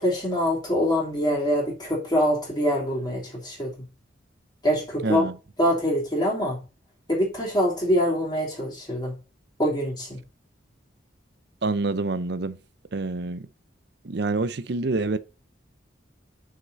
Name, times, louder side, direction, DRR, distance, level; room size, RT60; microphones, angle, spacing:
voice 1, 0.0-3.7 4.6-5.2 5.6-6.6 7.1-9.1 9.6-10.2, equal, 20° left, 3.0 m, -24 dB
voice 2, 5.0-5.3 11.6-12.6 12.9-13.5 14.0-15.2, right 3 dB, 60° right, 0.7 m, -27 dB
6.3 x 5.9 x 4.0 m
head